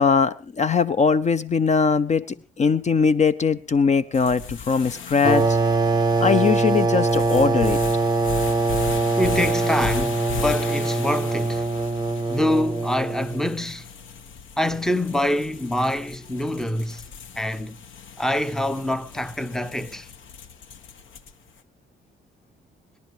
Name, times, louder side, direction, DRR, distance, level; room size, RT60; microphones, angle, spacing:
voice 1, 0.0-2.2 2.6-5.6 6.2-7.8, left 5 dB, 35° left, 0.7 m, -20 dB
sound 1, 4.1-21.5, left 6 dB, 75° left, 1.4 m, -37 dB
sound 2, 5.2-13.6, right 3 dB, 20° right, 1.3 m, -23 dB
voice 2, 9.2-11.7 12.3-13.9 14.6-17.0 17.3-17.8 18.2-20.1, left 1 dB, ahead, 0.8 m, -25 dB
27.0 x 10.5 x 3.2 m
cardioid pair, 90°, 20 cm